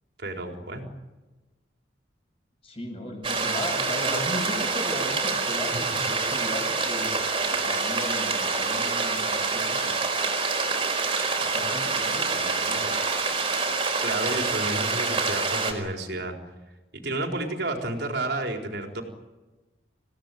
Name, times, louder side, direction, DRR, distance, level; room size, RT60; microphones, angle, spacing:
voice 1, 0.2-0.9 6.3-6.5 14.0-16.4 16.9-19.0, right 2 dB, 60° right, 3 dB, 4.3 m, -31 dB
voice 2, 2.6-7.2 7.6-10.1 11.4-12.9, left 1 dB, 30° left, 2 dB, 7.7 m, -36 dB
sound 1, 3.2-15.7, right 4 dB, 25° right, 4.7 m, -26 dB
27.5 x 17.5 x 9.3 m, 1.2 s
head